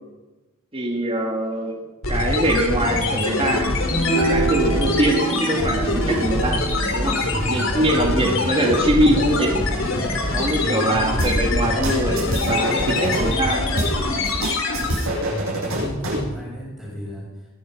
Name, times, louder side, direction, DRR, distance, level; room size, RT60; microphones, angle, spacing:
voice 1, 0.7-1.7 2.1-3.8 4.1-6.6 6.9-7.2 7.5-9.6 10.3-13.6, right 1 dB, 30° right, 1 dB, 1.9 m, -22 dB
sound 1, 2.0-15.2, left 2 dB, 70° left, 3.3 m, -24 dB
sound 2, 3.9-10.5, right 4 dB, 45° left, 3.6 m, -28 dB
voice 2, 7.2-8.2 10.6-11.0 15.3-17.5, right 1 dB, ahead, -9 dB, 5.5 m, -33 dB
sound 3, 11.2-13.3 13.8-16.3, right 1 dB, 90° right, 7.1 m, -25 dB
21.0 x 11.0 x 5.9 m, 1.1 s
head